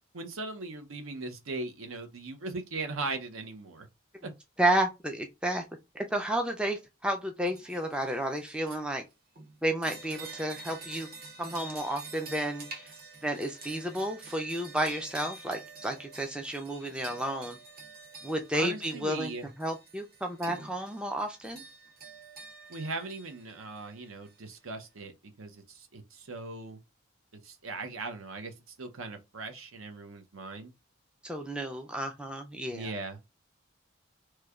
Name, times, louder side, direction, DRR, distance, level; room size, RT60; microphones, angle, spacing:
voice 1, 0.1-3.9 4.2-4.3 18.5-19.5 22.7-26.8 27.4-30.7 32.7-33.2, right 3 dB, 70° right, 0.7 m, -39 dB
voice 2, 4.6-5.6 5.9-9.1 9.6-11.1 11.4-12.9 13.2-17.6 18.2-19.3 19.6-21.6 31.2-32.9, right 1 dB, 5° right, 0.3 m, -31 dB
sound 1, 7.4-8.8 9.3-24.3, right 3 dB, 45° right, 0.9 m, -47 dB
3.1 x 2.2 x 3.5 m
head